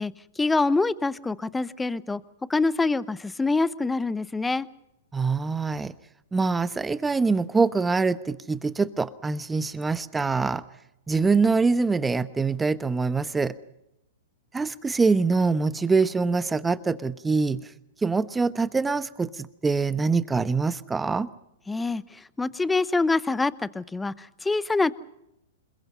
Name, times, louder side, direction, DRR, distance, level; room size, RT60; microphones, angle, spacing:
voice 1, 0.0-2.2 2.5-4.7 21.7-24.9, left 3 dB, 10° left, 18 dB, 0.8 m, -25 dB
voice 2, 5.1-5.9 6.3-10.6 11.1-13.5 14.5-17.7 18.0-21.3, right 4 dB, 10° right, 16 dB, 1.0 m, -24 dB
27.0 x 22.0 x 5.6 m, 0.85 s
hypercardioid pair, 115°, 0 cm